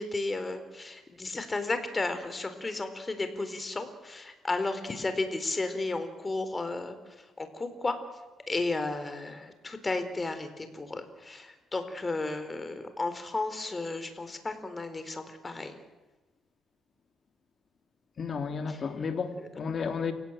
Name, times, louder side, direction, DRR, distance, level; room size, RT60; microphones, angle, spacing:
voice 1, 0.0-7.0 7.4-8.0 8.5-15.7 18.7-18.8 19.4-19.5, left 2 dB, 25° left, 4.0 m, -33 dB
voice 2, 18.2-20.1, left 5 dB, 50° left, 2.9 m, -32 dB
29.5 x 16.5 x 9.0 m
cardioid pair, 90°, 0 cm